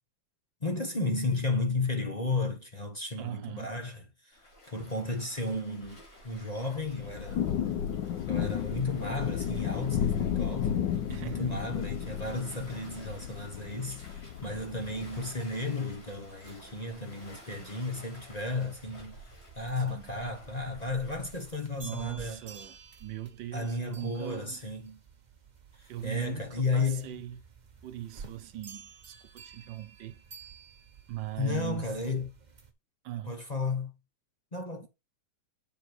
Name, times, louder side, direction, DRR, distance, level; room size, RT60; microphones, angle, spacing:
voice 1, 0.6-4.4 4.7-7.4 8.3-10.7 11.1-19.2 19.6-22.4 23.5-25.0 25.8-27.2 31.4-32.3 33.3-33.9 34.5-34.9, left 3 dB, 25° left, 1.1 m, -33 dB
voice 2, 3.2-3.8 11.1-11.7 19.9-20.1 21.8-24.7 25.9-27.4 27.8-30.2 31.1-31.9 33.0-33.3, right 13 dB, 80° right, 1.5 m, -40 dB
Waves surf, 4.3-21.5, left 1 dB, 55° left, 4.9 m, -53 dB
Thunder / Rain, 6.8-15.4, left 9 dB, 80° left, 1.5 m, -33 dB
sound 1, 14.9-32.7, right 6 dB, 30° right, 0.9 m, -53 dB
7.9 x 4.7 x 4.6 m
omnidirectional pair, 2.0 m